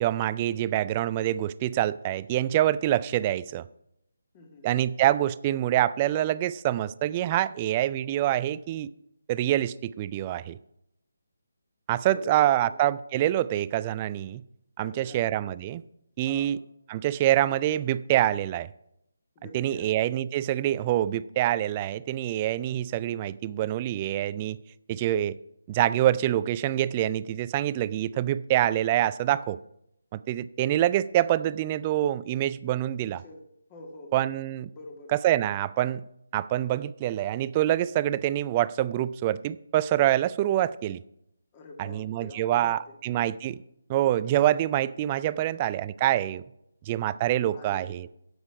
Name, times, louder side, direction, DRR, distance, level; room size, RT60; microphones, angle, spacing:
voice 1, 0.0-3.6 4.6-8.9 9.3-10.6 11.9-14.4 14.8-15.8 16.2-16.6 16.9-18.7 19.5-24.6 24.9-25.4 25.7-29.6 30.1-33.2 34.1-34.7 35.1-36.0 36.3-41.0 41.8-43.6 43.9-46.4 46.9-48.1, right 13 dB, 25° right, 17 dB, 0.3 m, -26 dB
voice 2, 4.3-4.7 12.1-12.8 14.8-15.6 16.3-16.5 19.4-19.9 33.0-33.4 33.7-34.3 34.7-35.2 41.5-43.0 45.3-45.5 47.5-48.0, left 2 dB, 25° left, 2 dB, 1.9 m, -46 dB
9.4 x 8.0 x 5.8 m, 0.80 s
figure-of-eight pair, 150°, 0 cm